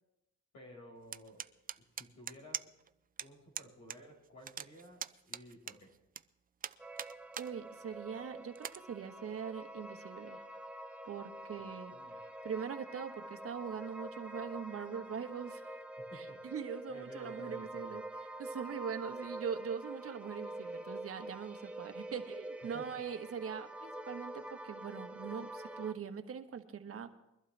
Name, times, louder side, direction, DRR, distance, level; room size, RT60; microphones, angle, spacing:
voice 1, 0.5-1.5 1.8-2.7 3.2-5.9 11.6-12.2 16.0-16.4 16.9-18.0 22.7-22.8, equal, 75° left, 0 dB, 5.5 m, -54 dB
sound 1, 1.1-2.9 3.2-3.3 3.5-4.0 4.2-6.2 6.6-7.5 7.9-8.0 8.5-8.8, right 8 dB, 30° right, 0.4 m, -42 dB
sound 2, 6.8-25.9, right 1 dB, 5° right, 0.9 m, -46 dB
voice 2, 7.4-10.4 11.0-11.9 12.4-15.6 16.1-18.0 18.4-27.1, right 7 dB, 50° right, 7 dB, 1.3 m, -42 dB
22.5 x 12.0 x 3.4 m, 0.89 s
cardioid pair, 90°, 30 cm